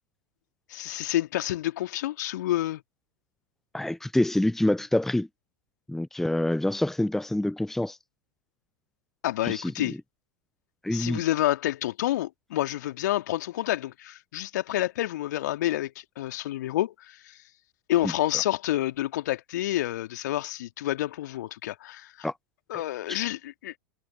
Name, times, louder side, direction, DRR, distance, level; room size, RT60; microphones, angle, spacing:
voice 1, 0.7-2.8 9.2-9.9 10.9-17.3 17.9-22.3 22.7-23.7, left 14 dB, 60° left, 2.4 m, -29 dB
voice 2, 3.7-5.3 5.9-8.0 9.4-10.0 10.8-11.2 18.0-18.1 22.2-22.3 22.7-22.8 23.1-23.2, left 1 dB, 5° left, 0.9 m, -26 dB
figure-of-eight pair, 85°, 11 cm